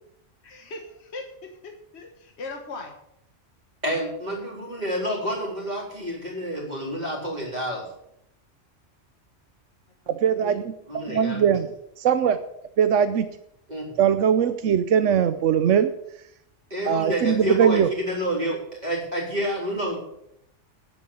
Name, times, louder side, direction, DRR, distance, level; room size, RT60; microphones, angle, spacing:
voice 1, 0.4-2.9 10.0-10.6, left 3 dB, 60° left, 2 dB, 1.6 m, -39 dB
voice 2, 3.8-7.9 10.9-11.6 13.7-14.0 16.7-20.0, equal, 35° right, -2 dB, 4.0 m, -29 dB
voice 3, 10.1-11.7 12.0-12.4 12.8-13.3 14.0-15.9 16.9-17.9, right 8 dB, 85° right, 10 dB, 1.1 m, -21 dB
10.5 x 8.6 x 7.0 m, 0.77 s
omnidirectional pair, 1.3 m